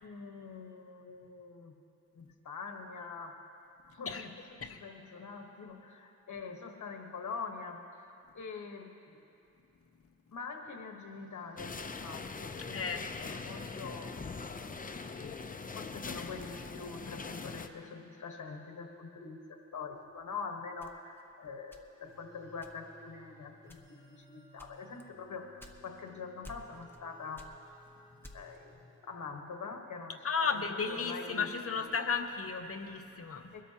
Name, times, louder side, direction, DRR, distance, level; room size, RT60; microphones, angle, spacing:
voice 1, 0.0-1.8 2.1-3.4 3.9-4.3 4.6-8.0 8.3-9.2 10.3-14.3 15.2-23.8 24.1-27.5 28.3-31.9 33.5-33.6, left 5 dB, 70° left, 3 dB, 1.4 m, -44 dB
sound 1, 11.6-17.7, left 4 dB, 30° left, 0.6 m, -42 dB
voice 2, 12.7-13.4 30.2-33.5, left 5 dB, 50° left, 5 dB, 0.9 m, -34 dB
sound 2, 20.8-22.2 22.6-23.1 23.6-24.1 24.6-26.1 26.4-27.0 27.3-28.7, left 1 dB, 5° left, 1.0 m, -53 dB
sound 3, 22.0-29.5, equal, 10° right, 1.8 m, -59 dB
22.5 x 13.0 x 2.9 m, 2.8 s
wide cardioid pair, 100°, 30 cm